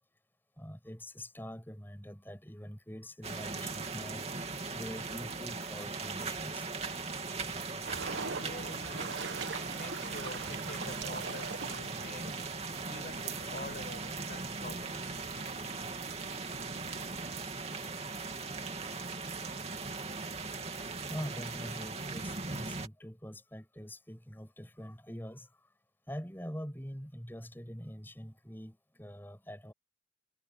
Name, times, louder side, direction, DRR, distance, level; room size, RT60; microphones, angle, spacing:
voice 1, 0.6-4.3 4.7-6.6 8.7-9.0 10.8-11.0 21.1-25.5 26.1-29.7, equal, 10° left, 7.3 m, -44 dB
sound 1, 3.2-22.9, right 4 dB, 35° right, 2.8 m, -39 dB
voice 2, 7.5-15.9, left 2 dB, 50° left, 5.9 m, -48 dB
sound 2, 7.9-17.4, right 4 dB, 85° right, 1.3 m, -44 dB
head